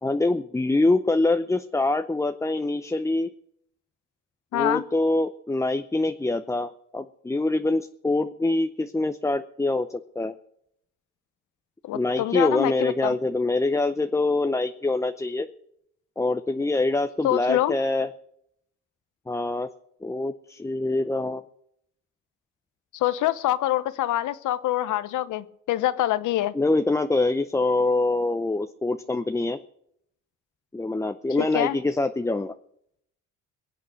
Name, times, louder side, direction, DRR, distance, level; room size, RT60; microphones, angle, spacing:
voice 1, 0.0-3.3 4.5-10.3 11.9-15.5 16.2-18.1 19.3-19.7 20.0-21.4 26.5-29.6 30.7-32.5, left 2 dB, 10° left, 9 dB, 0.6 m, -25 dB
voice 2, 4.5-4.8 11.9-13.2 17.2-17.7 22.9-26.5 31.4-31.8, left 13 dB, 80° left, 15 dB, 0.9 m, -25 dB
22.0 x 8.3 x 6.4 m, 0.74 s
cardioid pair, 90°, 30 cm